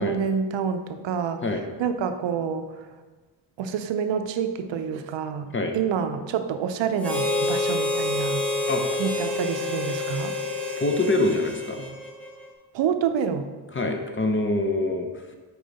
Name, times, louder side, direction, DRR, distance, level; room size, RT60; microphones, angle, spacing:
voice 1, 0.0-1.4 1.8-2.8 3.6-5.5 5.7-8.4 9.0-10.3 12.7-13.5, right 7 dB, 70° right, 8 dB, 0.6 m, -27 dB
Harmonica, 7.0-12.5, left 2 dB, 5° left, 1.2 m, -28 dB
voice 2, 10.8-11.9 13.7-15.1, left 2 dB, 25° left, 4 dB, 0.7 m, -25 dB
4.9 x 4.8 x 4.0 m, 1.3 s
cardioid pair, 80°, 46 cm